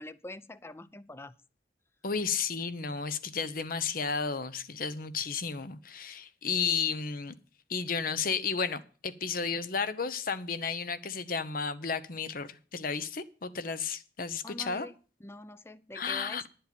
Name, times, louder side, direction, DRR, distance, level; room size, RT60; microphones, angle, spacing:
voice 1, 0.0-1.4 14.4-14.9 15.2-16.5, left 1 dB, 15° left, 16 dB, 0.6 m, -44 dB
voice 2, 2.0-7.3 7.7-14.9 15.9-16.4, left 5 dB, 50° left, 14 dB, 0.9 m, -33 dB
11.0 x 7.8 x 6.9 m, 0.37 s
head